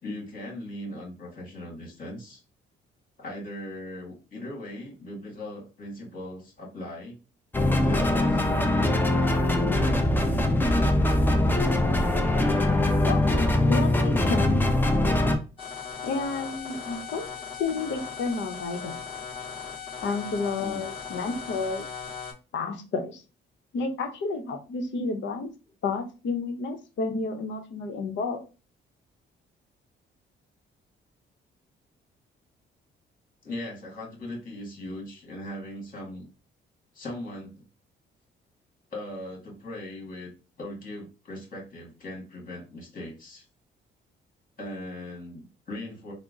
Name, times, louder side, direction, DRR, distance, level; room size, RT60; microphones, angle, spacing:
voice 1, 0.0-2.4 3.2-7.2 7.8-10.0 20.6-20.9 33.4-36.3 36.9-37.6 38.9-40.3 40.6-43.4 44.6-46.1, left 1 dB, 45° left, -2 dB, 1.9 m, -39 dB
sound 1, 7.5-15.4, left 1 dB, 10° left, 0.6 m, -22 dB
voice 2, 13.6-14.6 16.0-17.3 17.6-18.9 20.0-21.8 22.5-23.2 23.7-25.5 25.8-28.4, left 4 dB, 65° left, 6 dB, 0.8 m, -30 dB
sound 2, 15.6-22.3, left 6 dB, 25° left, 1.6 m, -38 dB
3.6 x 2.0 x 3.8 m, 0.32 s
cardioid pair, 90°, 20 cm